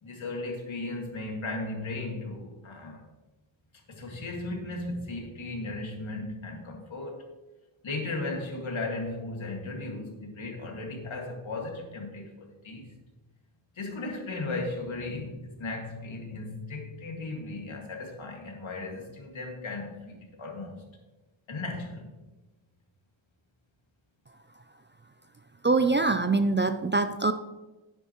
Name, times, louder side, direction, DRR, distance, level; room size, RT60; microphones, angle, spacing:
voice 1, 0.0-3.0 3.9-7.2 7.8-12.9 13.8-20.8 21.5-22.1, left 2 dB, 75° left, 1 dB, 2.2 m, -36 dB
voice 2, 25.6-27.3, right 3 dB, 25° right, 9 dB, 0.4 m, -24 dB
10.0 x 10.0 x 3.0 m, 1.1 s
wide cardioid pair, 115°, 48 cm